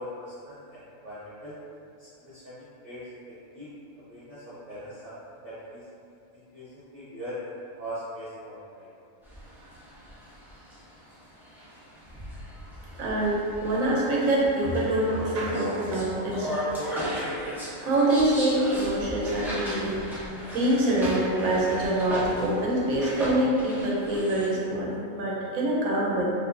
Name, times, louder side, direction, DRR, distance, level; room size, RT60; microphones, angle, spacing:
voice 1, 0.0-1.6 2.0-3.7 4.1-5.1 5.4-5.8 6.3-7.4 7.8-8.9, equal, 45° right, -12 dB, 1.1 m, -41 dB
sound 1, 9.2-24.5, equal, ahead, 0.7 m, -37 dB
voice 2, 12.9-16.5 17.8-20.0 20.5-26.2, right 1 dB, 75° right, -4 dB, 1.2 m, -25 dB
4.5 x 2.7 x 2.6 m, 2.5 s
omnidirectional pair, 1.5 m